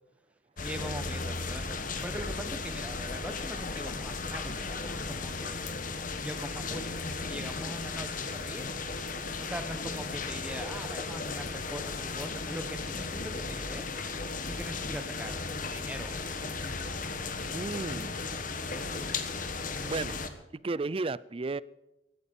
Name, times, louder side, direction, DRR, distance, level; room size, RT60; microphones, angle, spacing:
sound 1, 0.6-20.3, left 4 dB, 45° left, 1.3 m, -35 dB
voice 1, 0.6-5.7 6.2-8.7 9.4-13.9 14.5-15.5 15.7-16.2 18.5-18.9, equal, 5° right, 8 dB, 1.1 m, -42 dB
voice 2, 17.5-18.1 19.8-20.1 20.6-21.6, right 3 dB, 30° right, 20 dB, 0.4 m, -33 dB
15.5 x 12.5 x 5.3 m, 0.95 s
head